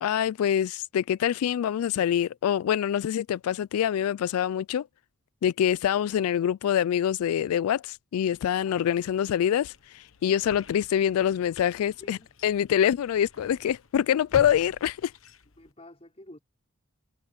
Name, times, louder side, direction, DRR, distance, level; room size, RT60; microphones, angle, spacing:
voice 1, 0.0-4.9 5.4-15.1, left 9 dB, 90° left, 0.3 m, -25 dB
sound 1, 8.2-15.7, left 4 dB, 70° left, 1.1 m, -47 dB
voice 2, 12.0-12.3 15.6-16.4, left 1 dB, 30° left, 4.8 m, -49 dB
head